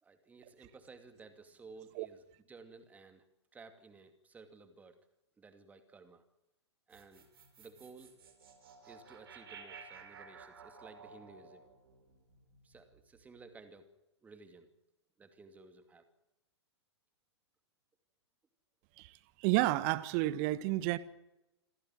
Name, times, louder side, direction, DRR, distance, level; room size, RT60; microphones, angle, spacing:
voice 1, 0.0-3.3 3.5-5.0 5.4-6.2 6.9-7.3 7.6-8.2 8.8-11.7 12.6-13.9 14.2-14.7 15.2-16.1, right 4 dB, 10° right, 2.5 m, -55 dB
sound 1, 6.9-13.2, right 5 dB, 55° right, 4.5 m, -55 dB
voice 2, 19.4-21.0, right 17 dB, 30° right, 1.2 m, -30 dB
27.5 x 16.5 x 7.7 m
figure-of-eight pair, 110°, 15 cm